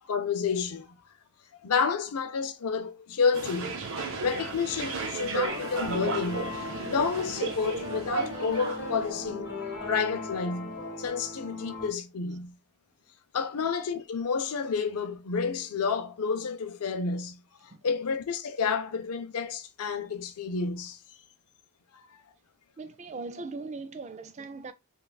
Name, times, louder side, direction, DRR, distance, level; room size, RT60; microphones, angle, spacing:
voice 1, 0.1-0.9 1.6-3.8 4.2-6.6 6.8-9.5 9.9-12.6 13.3-21.0, left 5 dB, 80° left, 0.5 m, -30 dB
sound 1, 3.3-9.1, right 4 dB, 60° right, 0.8 m, -34 dB
sound 2, 5.5-11.9, left 2 dB, 50° left, 1.4 m, -38 dB
voice 2, 22.8-24.7, right 3 dB, 30° right, 0.3 m, -39 dB
5.5 x 2.3 x 2.3 m
head